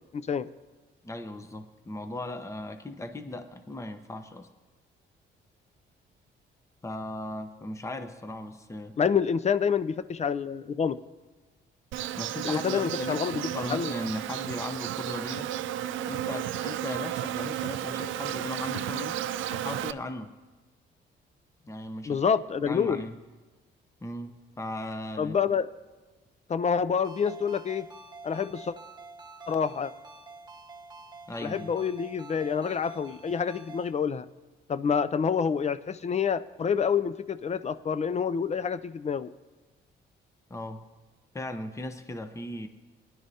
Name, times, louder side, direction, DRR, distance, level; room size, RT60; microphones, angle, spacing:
voice 1, 0.1-0.5 9.0-11.0 12.4-13.4 13.7-13.9 22.0-23.1 25.2-25.7 26.5-27.9 28.2-28.7 29.5-29.9 31.4-34.3 34.7-39.3, left 6 dB, 35° left, 15 dB, 0.4 m, -27 dB
voice 2, 1.0-4.5 6.8-9.0 12.2-15.5 16.1-19.2 19.5-20.3 21.6-22.2 22.6-23.2 24.0-25.4 31.3-31.7 40.5-40.8 41.3-42.7, left 1 dB, 15° left, 8 dB, 0.8 m, -37 dB
Insect, 11.9-19.9, right 12 dB, 80° right, 0.4 m, -33 dB
Ringtone, 27.0-33.9, right 3 dB, 20° right, 1.0 m, -47 dB
19.0 x 11.0 x 2.8 m, 1.3 s
cardioid pair, 90°, 20 cm